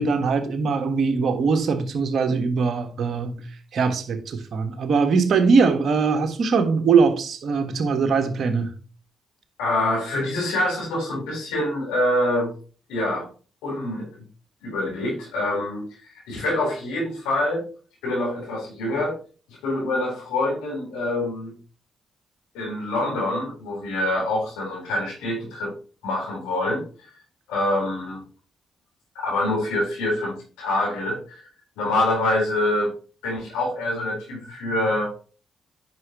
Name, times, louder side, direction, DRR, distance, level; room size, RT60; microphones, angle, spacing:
voice 1, 0.0-3.4 3.7-8.7, right 5 dB, 60° right, 1.5 m, -21 dB
voice 2, 9.6-12.5 12.9-13.3 13.6-14.2 14.6-17.6 18.0-19.2 19.5-21.5 22.5-25.7 26.0-27.1 27.5-28.2 29.1-31.5 31.8-32.9 33.2-35.1, left 1 dB, 80° left, 4.4 m, -25 dB
9.5 x 6.3 x 3.1 m
hypercardioid pair, 45°, 0 cm